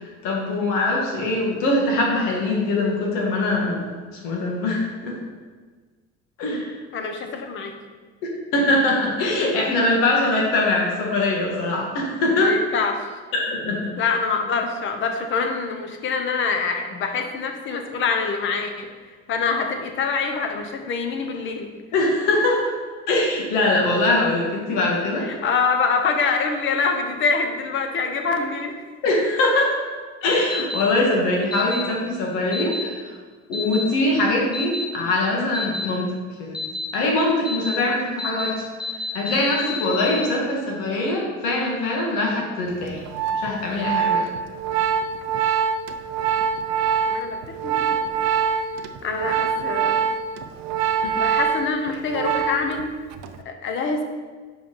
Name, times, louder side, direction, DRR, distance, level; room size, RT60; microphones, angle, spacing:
voice 1, 0.0-5.2 6.4-6.7 8.2-12.5 13.3-13.9 21.9-22.8 23.1-25.3 29.0-29.8 30.2-33.1 33.5-36.6 36.9-38.6 39.1-43.0 43.3-44.2 51.0-51.1, left 2 dB, 85° left, -2 dB, 1.9 m, -22 dB
voice 2, 6.9-7.7 12.4-13.0 14.0-18.9 19.3-21.7 25.2-28.7 47.1-48.1 49.0-50.0 51.2-52.9 53.4-54.0, left 4 dB, 40° left, 5 dB, 0.9 m, -25 dB
sound 1, 30.5-30.8 31.5-31.8 32.5-32.8 33.5-33.8 34.5-34.8 35.5-35.9 36.5-36.9 37.5-37.8 38.2-38.5 38.8-40.2, left 3 dB, ahead, 1.0 m, -29 dB
Organ, 42.8-52.8 53.1-53.4, right 7 dB, 60° right, 0.5 m, -24 dB
5.9 x 5.2 x 5.4 m, 1.4 s
cardioid pair, 165°, 30 cm